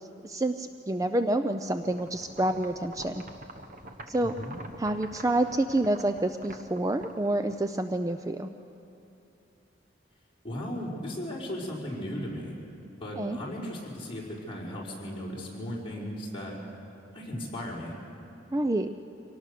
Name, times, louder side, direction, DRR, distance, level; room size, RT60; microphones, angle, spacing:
voice 1, 0.2-3.2 4.1-4.3 4.8-8.5 13.2-13.4 18.5-18.9, right 1 dB, 20° right, 8 dB, 0.4 m, -28 dB
sound 1, 1.8-7.9, right 1 dB, 45° right, 1.2 m, -47 dB
voice 2, 4.2-4.5 10.4-12.5 13.0-16.5 17.1-17.9, equal, 30° left, -5 dB, 4.6 m, -36 dB
25.0 x 18.0 x 6.7 m, 2.9 s
head